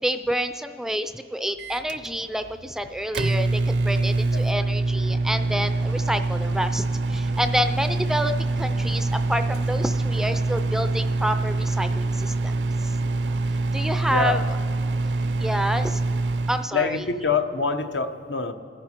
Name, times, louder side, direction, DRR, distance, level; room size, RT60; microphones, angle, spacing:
voice 1, 0.0-12.5 12.8-13.0 13.7-14.4 15.4-16.0 16.5-17.0, equal, 5° right, 9 dB, 0.4 m, -28 dB
Microwave oven, 1.6-16.7, right 2 dB, 70° right, 0.5 m, -25 dB
voice 2, 14.1-14.4 16.7-18.5, left 5 dB, 75° left, 7 dB, 0.9 m, -25 dB
29.0 x 10.5 x 4.4 m, 2.4 s
head